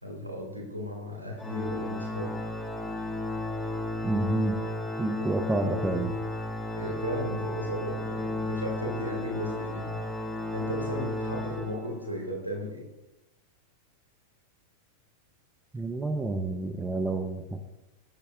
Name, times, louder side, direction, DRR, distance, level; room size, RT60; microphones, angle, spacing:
voice 1, 0.0-2.3 5.2-5.3 6.8-9.9 10.5-12.8, equal, 85° right, -1 dB, 3.8 m, -35 dB
Organ, 1.4-12.2, left 1 dB, 5° left, 1.7 m, -33 dB
voice 2, 4.0-4.6 5.0-6.1 15.7-17.6, right 2 dB, 10° right, 8 dB, 0.8 m, -29 dB
16.0 x 9.8 x 2.5 m, 0.95 s
figure-of-eight pair, 90°, 0 cm